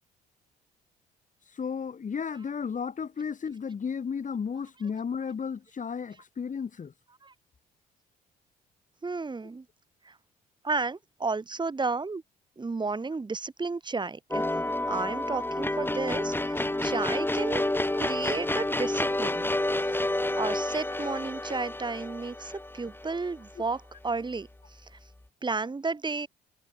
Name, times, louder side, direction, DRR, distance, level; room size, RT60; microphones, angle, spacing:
voice 1, 1.6-6.9, left 6 dB, 40° left, 6.5 m, -33 dB
voice 2, 9.0-9.6 10.1-10.2 10.6-12.2 12.6-14.4 14.9-17.6 18.0-19.5 20.4-24.5 25.4-26.3, right 4 dB, 20° right, 2.3 m, -32 dB
sound 1, 14.3-23.5, left 1 dB, 10° left, 5.6 m, -29 dB
figure-of-eight pair, 50°, 21 cm